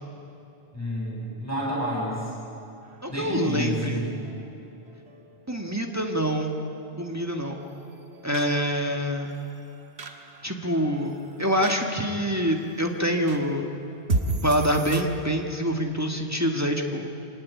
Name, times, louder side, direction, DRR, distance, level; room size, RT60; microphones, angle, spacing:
voice 1, 0.7-2.3 3.1-4.1, equal, 15° left, -5 dB, 7.0 m, -29 dB
sound 1, 2.8-15.0, right 2 dB, 85° right, 1.9 m, -37 dB
voice 2, 3.0-4.0 5.5-6.5 7.0-7.6 8.2-9.3 10.4-13.7 14.4-17.1, equal, 15° right, 2 dB, 1.9 m, -26 dB
25.0 x 18.5 x 9.6 m, 2.8 s
omnidirectional pair, 1.1 m